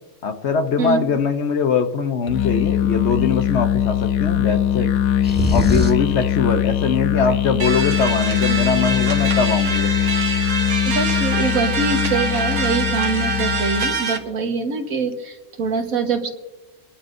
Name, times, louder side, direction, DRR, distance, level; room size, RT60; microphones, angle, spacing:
voice 1, 0.2-4.9 5.5-9.9, left 5 dB, 60° left, 8 dB, 1.0 m, -22 dB
Musical instrument, 2.3-14.0, left 10 dB, 85° left, 1.1 m, -21 dB
sound 1, 5.2-6.1, left 2 dB, 10° right, 1.4 m, -21 dB
sound 2, 7.6-14.2, right 4 dB, 60° right, 1.6 m, -25 dB
voice 2, 10.8-16.3, right 4 dB, 85° right, 4 dB, 1.8 m, -24 dB
24.0 x 11.5 x 2.6 m, 1.0 s
omnidirectional pair, 1.4 m